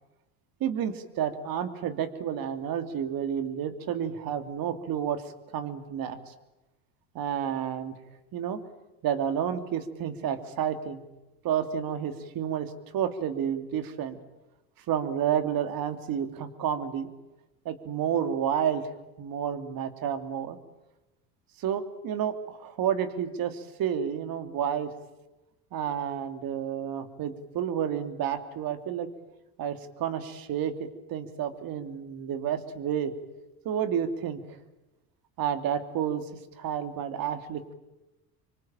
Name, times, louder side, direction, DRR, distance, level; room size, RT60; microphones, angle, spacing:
voice 1, 0.6-5.2 5.5-6.2 7.1-7.9 8.3-8.6 9.0-11.0 11.4-14.2 14.9-17.1 17.6-18.8 19.2-20.6 21.6-24.9 25.7-29.1 29.6-33.1 33.6-34.4 35.4-36.2 36.6-37.7, right 9 dB, 50° right, 9 dB, 2.9 m, -30 dB
25.5 x 25.0 x 9.0 m, 0.99 s
supercardioid pair, 90°, 44 cm